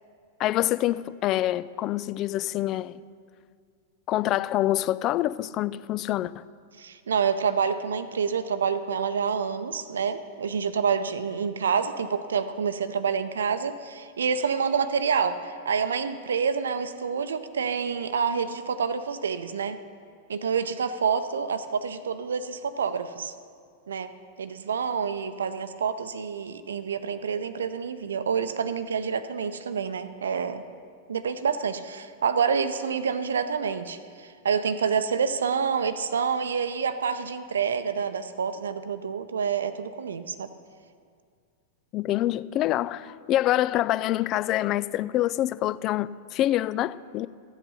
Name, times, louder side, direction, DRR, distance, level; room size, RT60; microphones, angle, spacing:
voice 1, 0.4-3.0 4.1-6.4 41.9-47.3, left 14 dB, 35° left, 0.3 m, -26 dB
voice 2, 6.8-19.8 20.3-23.3 23.9-24.1 24.4-30.6 31.1-40.5, right 6 dB, 65° right, 0.6 m, -28 dB
14.5 x 8.0 x 5.6 m
figure-of-eight pair, 95°, 0 cm